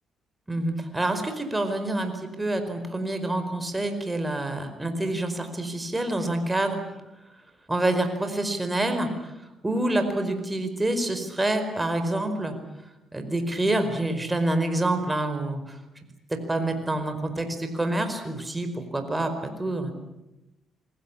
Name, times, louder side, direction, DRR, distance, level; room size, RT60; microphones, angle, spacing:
voice 1, 0.5-6.8 7.7-9.3 9.6-12.5 13.1-15.8 16.3-19.3 19.6-19.9, right 1 dB, 15° right, 7 dB, 4.8 m, -27 dB
28.0 x 20.5 x 8.7 m, 0.94 s
cardioid pair, 90°, 0 cm